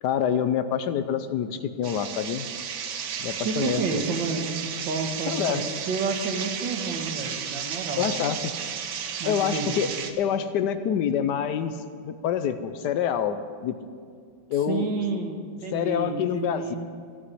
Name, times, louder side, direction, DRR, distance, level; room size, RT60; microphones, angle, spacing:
voice 1, 0.0-2.5 3.2-4.0 5.3-5.6 8.0-8.5 9.2-9.9 10.2-11.8 12.0-13.8 14.5-15.0 15.7-16.7, left 8 dB, 70° left, 10 dB, 1.2 m, -26 dB
sound 1, 1.8-10.1, right 7 dB, 75° right, 1.5 m, -33 dB
voice 2, 3.4-8.1 9.2-9.7 14.7-16.8, right 4 dB, 90° right, 4 dB, 2.0 m, -30 dB
16.0 x 6.0 x 9.5 m, 2.2 s
omnidirectional pair, 2.0 m